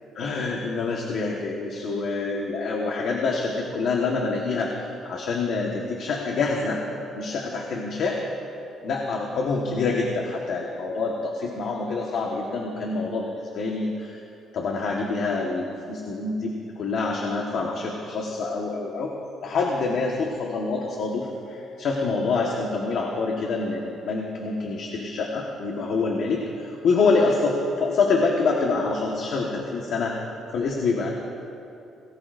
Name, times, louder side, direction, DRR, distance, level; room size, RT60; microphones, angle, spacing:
voice 1, 0.1-4.7 5.0-6.8 7.1-8.2 8.8-14.2 14.5-19.1 19.4-31.1, left 4 dB, 55° left, -1 dB, 1.4 m, -26 dB
22.0 x 19.0 x 2.6 m, 2.8 s
cardioid pair, 165°, 0 cm